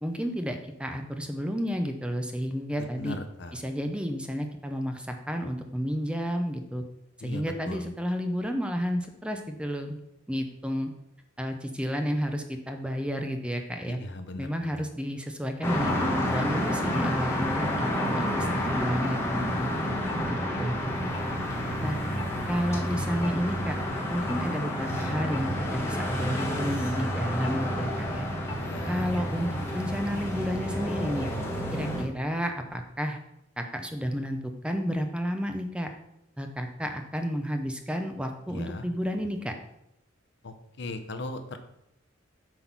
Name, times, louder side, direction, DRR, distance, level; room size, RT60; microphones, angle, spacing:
voice 1, 0.0-3.2 3.5-6.8 7.2-10.0 10.3-10.9 11.4-14.0 14.4-19.2 19.5-19.7 20.2-20.8 21.8-22.0 22.5-23.8 24.1-28.3 28.8-31.3 31.7-33.2 33.6-35.9 36.4-39.5, equal, 5° right, 5 dB, 0.6 m, -31 dB
voice 2, 3.0-3.5 7.2-7.8 13.9-14.8 20.5-20.6 28.6-29.1 38.5-38.8 40.4-41.6, left 2 dB, 60° left, 8 dB, 0.8 m, -38 dB
sound 1, 15.6-32.0, equal, 15° left, 1.3 m, -29 dB
7.8 x 3.8 x 6.0 m, 0.83 s
head